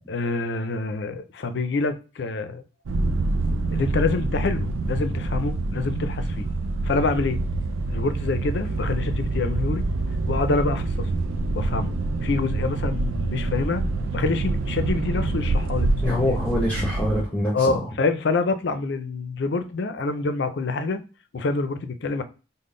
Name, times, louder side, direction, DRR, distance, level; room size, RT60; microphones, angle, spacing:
voice 1, 0.1-2.6 3.7-6.5 6.8-7.4 7.9-9.8 10.3-11.1 11.6-11.9 12.2-13.8 14.1-16.0 16.3-16.4 17.5-21.0 21.3-22.2, left 3 dB, 60° left, 0.4 m, -26 dB
sound 1, 2.9-17.2, right 2 dB, 85° right, 0.4 m, -26 dB
voice 2, 16.0-17.8, left 1 dB, 10° left, 0.7 m, -25 dB
3.7 x 2.1 x 3.7 m
head